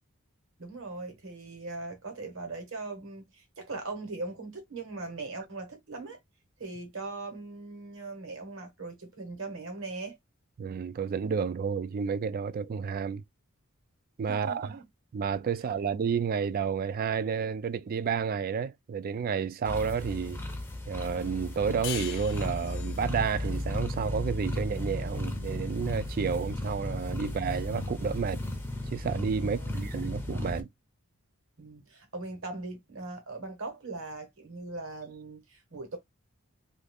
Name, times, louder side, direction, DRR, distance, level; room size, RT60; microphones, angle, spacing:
voice 1, 0.6-6.2 6.6-10.2 14.3-14.9 29.4-29.8 31.6-36.0, right 3 dB, 65° right, 1.3 m, -40 dB
voice 2, 10.6-13.2 14.2-14.7 15.1-20.4 20.9-28.4 28.9-30.7, right 6 dB, 45° right, 0.3 m, -31 dB
sound 1, 19.6-30.6, left 1 dB, 10° left, 0.6 m, -35 dB
sound 2, 21.8-25.0, left 10 dB, 60° left, 0.5 m, -42 dB
2.6 x 2.4 x 3.3 m
head